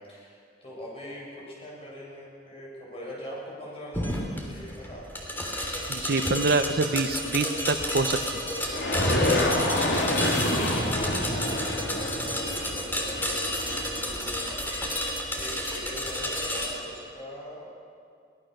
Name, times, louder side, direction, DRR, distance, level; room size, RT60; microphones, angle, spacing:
voice 1, 0.0-5.1 8.7-14.7 14.9-15.0 15.3-17.7, equal, 35° left, -4 dB, 7.6 m, -42 dB
sound 1, 3.9-16.7, equal, 10° left, 3.1 m, -31 dB
voice 2, 5.9-8.2, right 3 dB, 60° right, 10 dB, 0.7 m, -25 dB
sound 2, 8.7-14.3, left 1 dB, 70° left, 3.4 m, -27 dB
23.0 x 18.0 x 6.6 m, 2.3 s
head